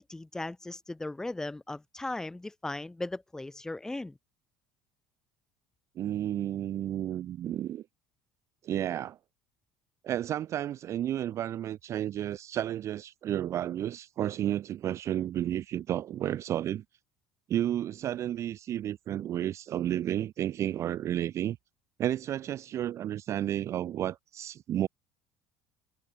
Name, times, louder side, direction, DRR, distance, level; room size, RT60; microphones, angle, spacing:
voice 1, 0.0-4.2, left 2 dB, 5° left, 0.6 m, -37 dB
voice 2, 6.0-7.8 8.6-9.2 10.0-16.8 17.5-21.6 22.0-24.9, right 11 dB, 40° right, 0.4 m, -32 dB
cardioid pair, 125°, 7 cm